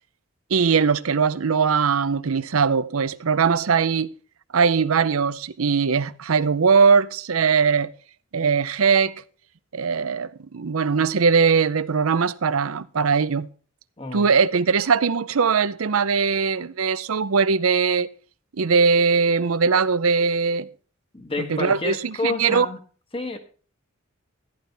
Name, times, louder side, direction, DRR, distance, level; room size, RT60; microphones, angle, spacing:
voice 1, 0.5-4.1 4.5-7.9 8.3-9.2 9.7-13.5 14.1-18.1 18.6-20.7 21.5-22.7, right 5 dB, 80° right, 0.6 m, -20 dB
voice 2, 14.0-14.3 21.1-22.8 23.1-23.4, left 3 dB, 25° left, 1.4 m, -29 dB
14.0 x 11.0 x 3.4 m
head